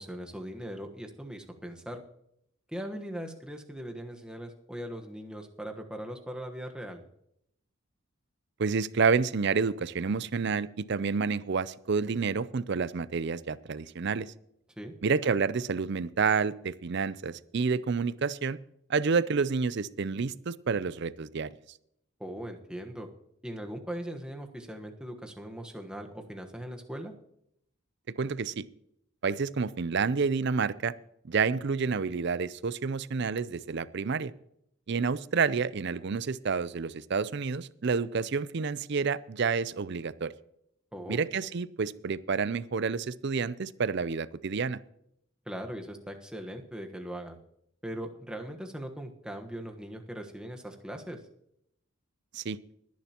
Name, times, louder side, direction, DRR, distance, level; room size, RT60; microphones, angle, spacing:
voice 1, 0.0-2.0 2.7-7.0 14.8-14.9 22.2-23.1 23.4-27.1 40.9-41.2 45.5-47.4 47.8-51.2, equal, 5° right, 3 dB, 1.2 m, -40 dB
voice 2, 8.6-14.3 15.0-18.6 18.9-21.5 28.2-28.6 29.2-30.9 31.2-34.3 34.9-40.3 41.1-44.8 52.3-52.6, right 5 dB, 55° right, 17 dB, 0.5 m, -29 dB
20.0 x 10.5 x 2.9 m, 0.74 s
head